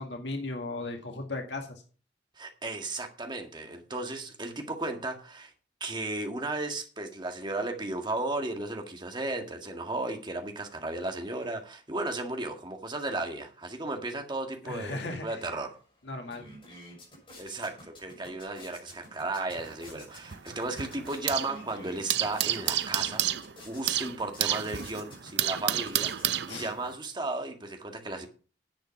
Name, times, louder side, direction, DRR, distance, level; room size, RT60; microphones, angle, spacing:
voice 1, 0.0-1.8 14.6-15.5 16.1-16.4 26.5-26.7, left 2 dB, 75° left, 1.8 m, -36 dB
voice 2, 2.4-5.5 5.8-15.7 17.4-23.3 23.6-28.3, right 2 dB, 25° right, 1.8 m, -35 dB
sound 1, 15.8-15.9 16.1-27.1, left 1 dB, 30° left, 6.7 m, -51 dB
sound 2, 19.5-21.6 21.9-26.9, right 12 dB, 70° right, 0.6 m, -31 dB
10.5 x 8.1 x 5.8 m
head